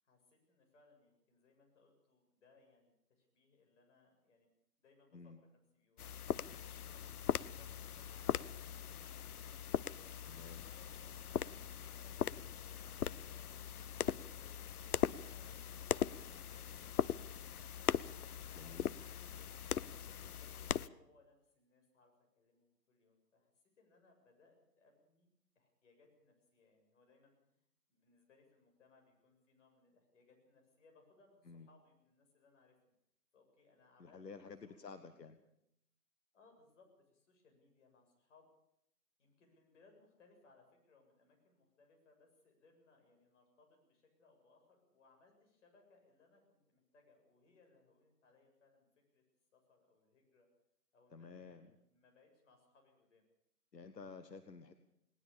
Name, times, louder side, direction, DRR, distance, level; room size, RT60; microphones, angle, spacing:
voice 1, 0.0-4.5 4.8-7.0 7.5-13.4 13.8-17.2 18.5-19.6 19.9-25.3 25.5-27.6 27.9-32.9 33.3-35.3 36.3-38.5 39.2-48.9 49.1-49.2 49.5-50.5 50.9-53.2, left 3 dB, 45° left, 2 dB, 7.6 m, -69 dB
sound 1, 6.0-20.9, left 9 dB, 65° left, 0.7 m, -40 dB
voice 2, 10.3-10.6 18.5-18.9 31.5-31.7 34.0-35.4 51.1-51.7 53.7-54.7, left 4 dB, 80° left, 9 dB, 1.6 m, -52 dB
20.0 x 19.0 x 7.2 m, 0.76 s
figure-of-eight pair, 140°, 49 cm